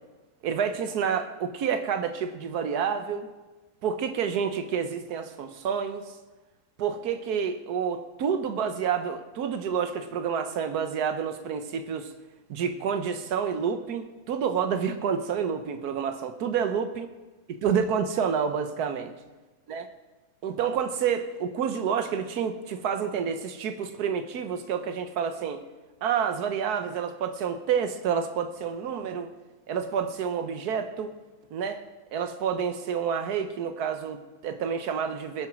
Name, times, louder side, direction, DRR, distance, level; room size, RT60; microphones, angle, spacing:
voice 1, 0.4-3.3 3.8-6.1 6.8-12.1 12.5-17.1 17.6-19.1 19.7-19.8 20.4-25.6 26.0-29.3 29.7-31.1 31.5-31.8 32.1-35.5, right 7 dB, 85° right, 8 dB, 1.4 m, -29 dB
21.0 x 7.3 x 6.0 m, 1.2 s
omnidirectional pair, 1.6 m